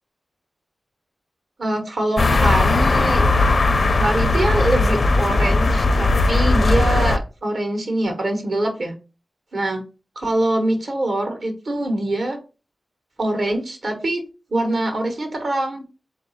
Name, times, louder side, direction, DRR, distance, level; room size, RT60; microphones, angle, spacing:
voice 1, 1.6-3.3 3.9-8.9 9.5-9.8 10.2-12.4 13.2-14.2 14.5-15.8, right 1 dB, 70° right, 5 dB, 1.1 m, -23 dB
sound 1, 2.2-7.2, left 3 dB, 60° left, 0.5 m, -18 dB
3.9 x 2.6 x 4.0 m, 0.33 s
cardioid pair, 50°, 0 cm